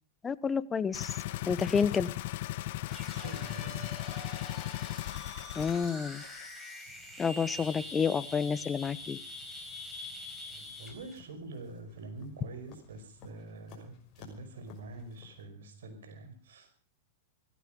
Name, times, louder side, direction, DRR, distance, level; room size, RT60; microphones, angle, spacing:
voice 1, 0.2-1.2 1.5-2.1 5.6-6.2 7.2-9.2, left 6 dB, 15° left, 16 dB, 0.9 m, -29 dB
sound 1, 0.9-5.9 6.2-6.3, left 16 dB, 60° left, 0.9 m, -37 dB
sound 2, 2.9-11.1, left 1 dB, 5° right, 4.8 m, -45 dB
voice 2, 3.1-3.9 10.5-16.7, right 2 dB, 80° right, 7 dB, 5.3 m, -46 dB
sound 3, 6.8-15.4, left 7 dB, 35° left, 6.2 m, -58 dB
17.0 x 15.0 x 5.3 m, 0.41 s
hypercardioid pair, 135°, 0 cm